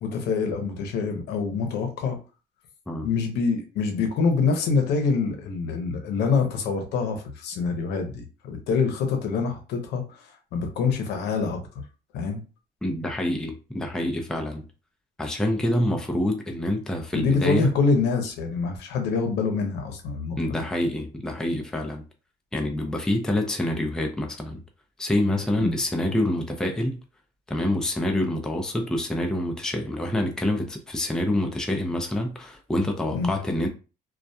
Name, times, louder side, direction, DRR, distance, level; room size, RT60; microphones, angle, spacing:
voice 1, 0.0-2.2 3.0-11.6 12.1-12.4 17.1-20.6 25.6-25.8 33.1-33.3, left 5 dB, 80° left, 0.7 m, -25 dB
voice 2, 12.8-14.7 15.2-17.7 20.4-22.0 22.5-24.6 25.0-27.0 27.5-33.7, left 1 dB, 5° left, 0.4 m, -26 dB
2.3 x 2.1 x 2.6 m
cardioid pair, 110°, 17 cm